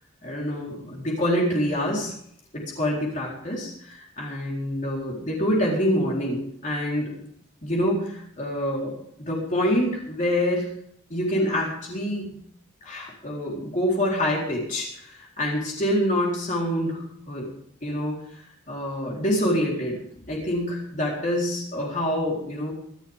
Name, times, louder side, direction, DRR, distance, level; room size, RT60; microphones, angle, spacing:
voice 1, 0.2-2.1 2.5-7.1 7.6-10.7 11.1-12.3 12.8-17.5 17.8-20.0 20.3-22.7, equal, 40° left, -3 dB, 4.0 m, -26 dB
24.5 x 11.5 x 3.6 m, 0.68 s
head